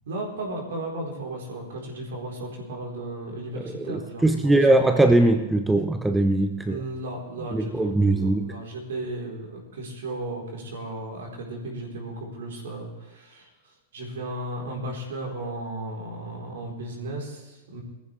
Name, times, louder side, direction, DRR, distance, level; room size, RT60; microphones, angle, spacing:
voice 1, 0.0-4.9 6.7-13.5 13.9-17.8, right 1 dB, 60° right, 0 dB, 4.1 m, -35 dB
voice 2, 3.8-6.8 7.5-8.6, right 2 dB, 5° right, 7 dB, 0.8 m, -21 dB
21.5 x 14.5 x 3.4 m, 1.1 s
figure-of-eight pair, 90°, 0 cm